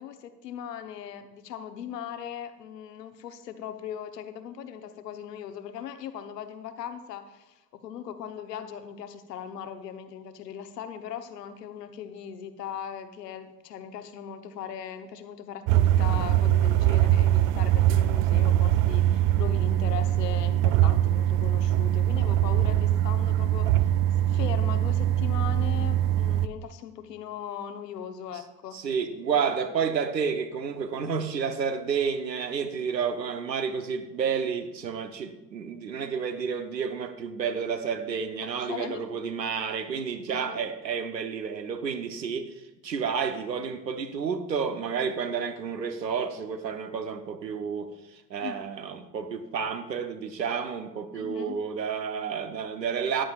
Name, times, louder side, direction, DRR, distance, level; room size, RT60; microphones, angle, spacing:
voice 1, 0.0-23.9 24.2-28.8 38.4-39.0 40.3-40.7 48.4-48.6 51.1-51.6, left 9 dB, 75° left, 8 dB, 1.1 m, -39 dB
sound 1, 15.7-26.5, right 12 dB, 45° right, 0.5 m, -22 dB
voice 2, 28.7-42.5 42.8-53.2, right 6 dB, 85° right, 9 dB, 1.0 m, -30 dB
14.0 x 11.0 x 2.4 m, 1.1 s
figure-of-eight pair, 75°, 49 cm